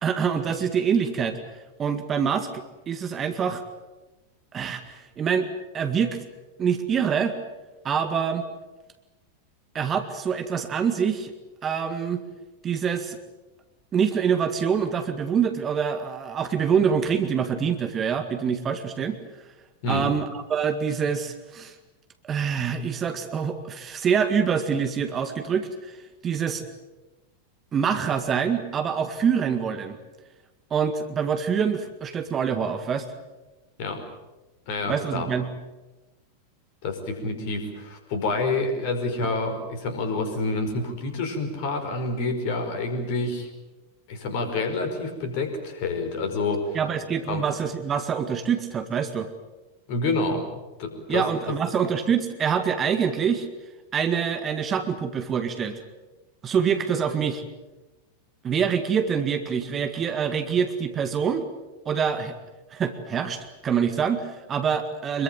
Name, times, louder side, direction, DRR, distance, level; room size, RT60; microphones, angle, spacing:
voice 1, 0.0-3.6 4.5-5.5 5.7-6.3 6.6-7.4 7.8-8.4 9.7-11.3 11.6-12.2 12.6-13.2 13.9-19.2 19.9-21.8 22.2-26.0 26.2-26.6 27.7-30.0 30.7-33.1 34.9-35.5 46.7-49.3 51.1-53.5 53.9-55.8 56.4-57.4 58.4-61.5 61.9-62.3 62.7-65.2, right 7 dB, 25° right, 8 dB, 1.9 m, -25 dB
voice 2, 34.7-35.3 36.8-43.5 44.1-46.8 47.3-47.4 49.9-50.4 50.8-51.6, left 3 dB, 45° left, 7 dB, 5.1 m, -28 dB
25.5 x 22.5 x 7.7 m, 1.1 s
figure-of-eight pair, 90°, 0 cm